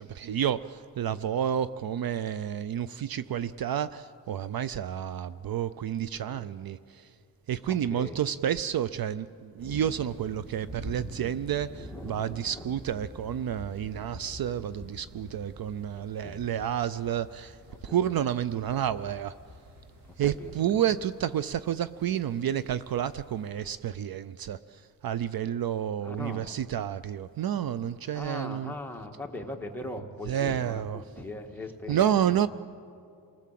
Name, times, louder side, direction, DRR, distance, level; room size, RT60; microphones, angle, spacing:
voice 1, 0.0-7.1 7.5-19.4 20.2-28.7 30.3-31.0 31.9-32.5, right 10 dB, 60° right, 15 dB, 0.6 m, -30 dB
voice 2, 7.7-8.2 11.7-12.7 16.0-16.5 17.7-18.1 20.2-20.6 26.0-26.5 28.1-32.5, left 2 dB, 5° left, 1 dB, 2.0 m, -40 dB
sound 1, 9.6-23.5, equal, 75° right, 5.2 m, -47 dB
28.0 x 19.0 x 7.6 m, 2.4 s
wide cardioid pair, 115°, 41 cm